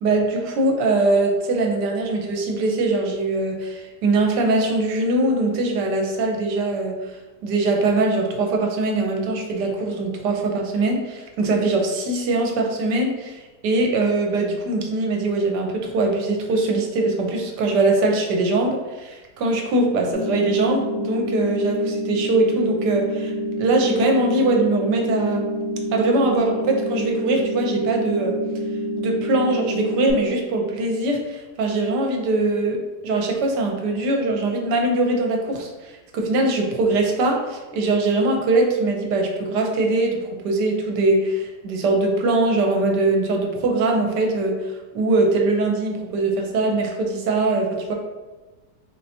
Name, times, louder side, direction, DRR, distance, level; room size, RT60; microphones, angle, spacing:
voice 1, 0.0-7.1 7.4-23.3 23.6-25.4 25.9-28.4 29.0-44.6 44.9-47.9, right 2 dB, 75° right, 2 dB, 1.2 m, -22 dB
sound 1, 20.1-30.1, equal, 35° left, 0.7 m, -27 dB
3.9 x 3.2 x 2.8 m, 1.2 s
omnidirectional pair, 1.9 m